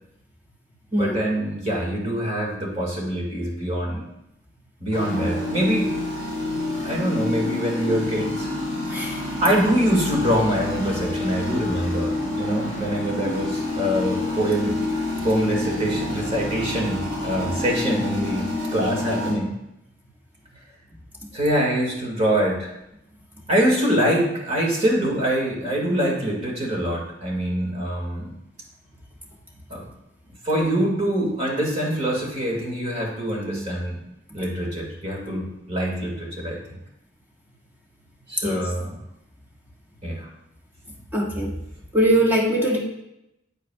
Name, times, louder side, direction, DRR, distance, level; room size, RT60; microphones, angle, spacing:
voice 1, 1.0-4.0 4.8-5.9 6.8-8.5 9.4-19.5 21.3-22.7 23.5-28.3 29.7-29.8 30.4-34.0 34.3-36.6 38.3-39.0 40.0-40.3, equal, 35° right, -1 dB, 2.1 m, -24 dB
sound 1, 4.9-19.3, left 1 dB, 85° right, 2.9 m, -28 dB
voice 2, 41.1-41.5 41.9-42.8, right 1 dB, 10° right, -2 dB, 1.5 m, -21 dB
9.0 x 8.3 x 2.4 m, 0.84 s
head